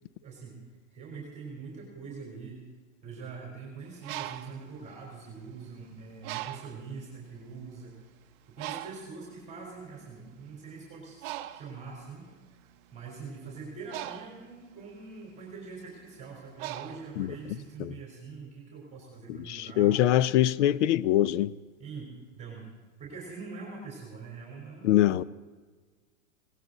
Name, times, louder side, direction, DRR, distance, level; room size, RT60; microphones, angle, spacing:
voice 1, 0.2-0.6 0.9-2.6 3.0-8.0 8.6-12.3 12.9-20.0 21.8-22.7 23.0-25.3, right 4 dB, 15° right, 3.5 m, -43 dB
Bird, 3.8-5.7 6.2-6.9 7.6-7.7 8.0-17.7, right 15 dB, 45° right, 0.7 m, -41 dB
voice 2, 19.3-21.5 24.8-25.2, left 12 dB, 60° left, 0.6 m, -24 dB
18.0 x 17.5 x 3.9 m
hypercardioid pair, 135°, 41 cm